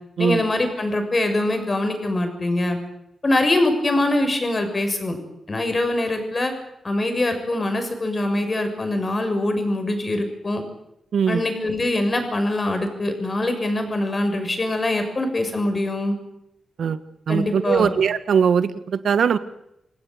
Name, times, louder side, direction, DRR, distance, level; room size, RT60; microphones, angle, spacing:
voice 1, 0.2-2.8 3.2-5.2 5.5-6.5 6.8-10.6 11.3-16.2 17.3-17.9, left 1 dB, 35° left, 7 dB, 6.9 m, -23 dB
voice 2, 11.1-11.4 16.8-17.0 17.3-19.4, right 7 dB, 80° right, 12 dB, 1.7 m, -20 dB
28.5 x 18.0 x 8.1 m, 0.80 s
cardioid pair, 85°, 0 cm